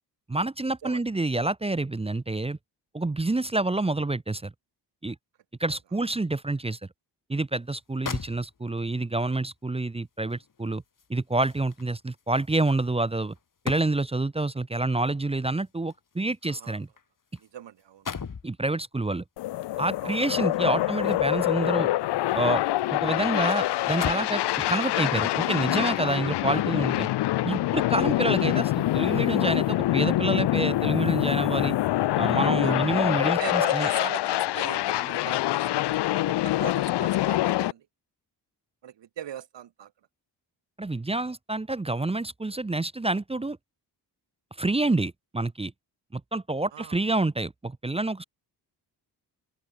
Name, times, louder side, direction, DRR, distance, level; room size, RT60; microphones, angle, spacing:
voice 1, 0.3-2.6 2.9-4.5 5.0-5.2 5.6-6.8 7.3-10.8 11.1-13.3 13.6-16.9 18.4-19.2 19.8-21.9 22.3-22.6 22.9-24.4 24.7-27.1 27.4-31.8 32.2-33.9 40.8-43.6 44.6-45.7 46.1-48.2, right 2 dB, 15° right, 0.7 m, -28 dB
sound 1, 7.7-7.8 8.1-8.9 10.3-14.3 15.4-17.5 17.8-18.5 20.0-21.6 22.0-22.9 23.3-23.4 23.8-24.5 25.1-25.3, left 6 dB, 50° left, 3.4 m, -40 dB
voice 2, 16.4-16.8 17.4-18.1 20.0-20.2 31.6-32.0 32.5-32.8 33.4-37.9 38.8-39.9 46.7-47.0, right 10 dB, 85° right, 3.2 m, -40 dB
sound 2, 19.4-37.7, left 15 dB, 70° left, 0.5 m, -25 dB
open air
cardioid pair, 80°, 42 cm